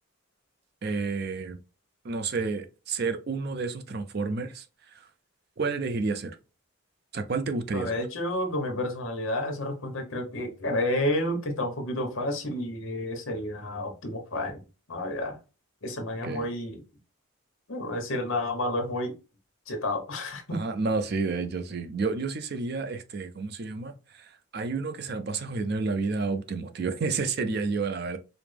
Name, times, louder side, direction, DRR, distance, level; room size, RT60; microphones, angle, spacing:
voice 1, 0.8-1.6 2.0-4.6 4.9-5.0 5.6-6.4 7.1-8.0 16.2-16.5 20.5-28.2, right 4 dB, 45° right, 0.4 m, -30 dB
voice 2, 7.7-14.6 14.9-15.4 15.8-16.8 17.7-19.1 19.7-20.6, left 1 dB, 70° left, 1.1 m, -30 dB
4.9 x 2.1 x 3.3 m
head